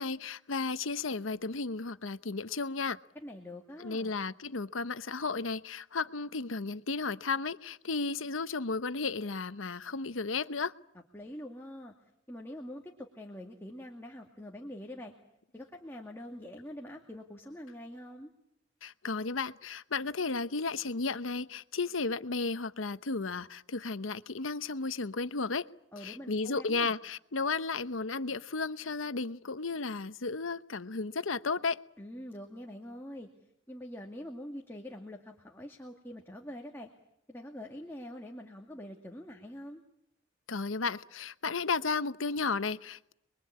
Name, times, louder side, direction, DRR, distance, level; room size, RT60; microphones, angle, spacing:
voice 1, 0.0-3.0 3.8-10.7 18.8-25.7 26.0-31.8 40.5-43.1, left 4 dB, 85° left, 1.0 m, -34 dB
voice 2, 3.1-4.2 11.1-11.9 12.3-15.1 15.5-18.3 25.9-26.9 32.0-33.3 33.7-36.9 37.3-39.8, left 1 dB, 10° left, 2.2 m, -45 dB
27.0 x 22.5 x 8.6 m
head